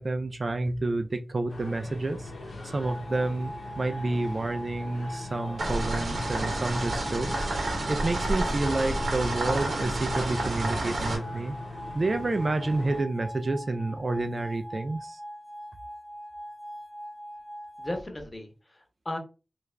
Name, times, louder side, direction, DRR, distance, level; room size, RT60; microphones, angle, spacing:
voice 1, 0.0-2.3 2.7-7.5 7.9-11.5 11.9-15.2, right 2 dB, 50° right, 7 dB, 0.4 m, -29 dB
sound 1, 1.5-13.0, left 1 dB, 85° left, 0.8 m, -40 dB
sound 2, 2.8-18.0, equal, 15° right, 0.7 m, -42 dB
sound 3, 5.6-11.2, right 2 dB, 80° right, 0.8 m, -30 dB
voice 2, 17.8-19.2, left 1 dB, 25° left, 3 dB, 1.0 m, -36 dB
3.3 x 2.4 x 3.2 m, 0.32 s
wide cardioid pair, 80°, 0 cm